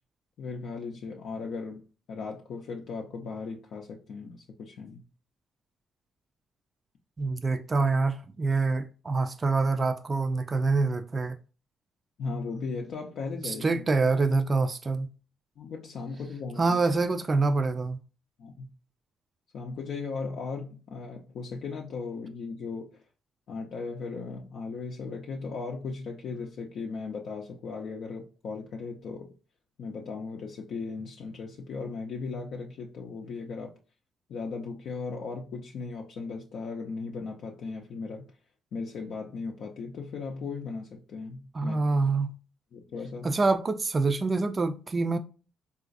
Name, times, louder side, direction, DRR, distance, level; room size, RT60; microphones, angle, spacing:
voice 1, 0.4-5.0 12.2-13.8 15.6-16.8 18.4-18.7 19.5-23.0 23.5-29.3 29.8-33.7 34.3-38.3 38.7-41.8 42.7-43.3, left 4 dB, 70° left, 0.5 m, -37 dB
voice 2, 7.2-11.3 13.4-15.1 16.6-18.0 41.5-42.3 43.2-45.2, right 3 dB, 30° right, 0.3 m, -26 dB
3.8 x 2.4 x 2.5 m
cardioid pair, 90°, 0 cm